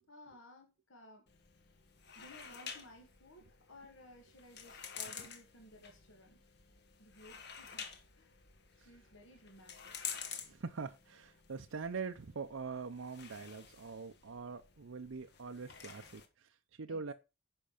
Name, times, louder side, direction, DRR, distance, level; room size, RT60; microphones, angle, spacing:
voice 1, 0.1-1.3 2.1-6.4 7.0-8.4 8.8-10.0 16.9-17.1, left 1 dB, 75° left, 2.4 m, -58 dB
sound 1, 1.3-16.3, left 7 dB, 55° left, 1.4 m, -50 dB
voice 2, 10.4-17.1, right 5 dB, 75° right, 0.6 m, -43 dB
10.5 x 5.4 x 5.1 m
head